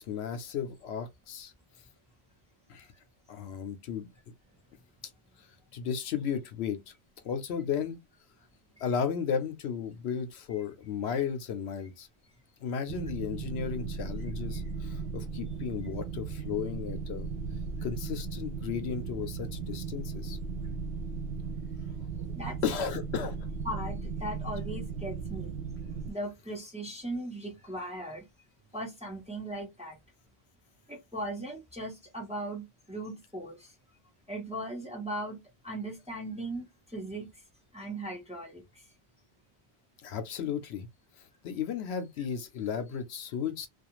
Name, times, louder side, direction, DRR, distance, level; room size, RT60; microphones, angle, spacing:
voice 1, 0.0-1.5 2.7-2.9 3.3-4.1 5.7-6.9 7.2-8.0 8.8-12.1 12.6-17.3 17.8-20.4 22.6-23.4 40.0-40.9 41.4-43.7, left 7 dB, 80° left, 0.9 m, -34 dB
sound 1, 12.9-26.1, right 5 dB, 70° right, 0.8 m, -37 dB
voice 2, 23.6-25.5 26.1-28.2 28.7-30.0 30.9-33.7 34.3-37.3 37.7-38.9, right 1 dB, 5° right, 0.8 m, -38 dB
2.4 x 2.4 x 2.9 m
omnidirectional pair, 1.1 m